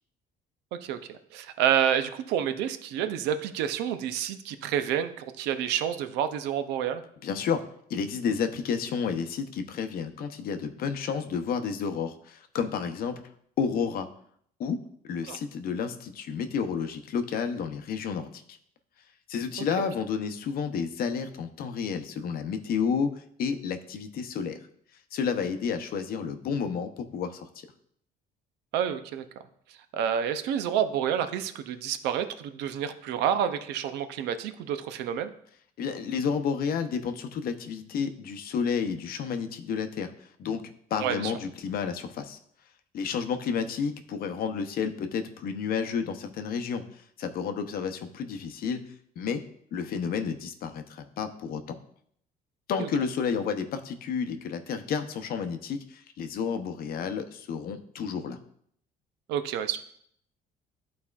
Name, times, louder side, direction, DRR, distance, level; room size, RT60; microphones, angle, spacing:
voice 1, 0.8-7.0 15.3-15.4 28.7-29.3 29.9-35.3 41.0-41.3 52.8-52.9 59.3-59.8, right 9 dB, 90° right, 10 dB, 0.5 m, -29 dB
voice 2, 7.2-7.6 7.9-13.2 13.6-14.1 14.6-14.8 15.0-18.4 19.3-24.6 25.1-27.5 35.8-40.6 40.9-42.4 42.9-48.8 49.2-49.4 49.7-51.8 52.7-58.4, left 6 dB, 60° left, 8 dB, 0.7 m, -31 dB
11.5 x 4.2 x 2.4 m, 0.66 s
cardioid pair, 110°, 17 cm